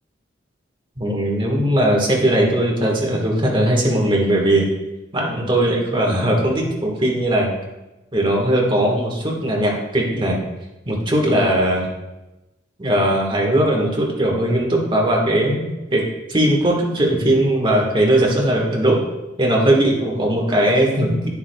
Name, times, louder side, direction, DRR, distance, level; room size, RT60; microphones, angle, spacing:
voice 1, 1.0-4.7 5.1-7.5 8.1-10.4 10.8-11.9 12.8-15.6 15.9-19.0 19.4-21.3, right 1 dB, 25° right, -1 dB, 1.4 m, -19 dB
9.8 x 7.1 x 2.3 m, 1.0 s
head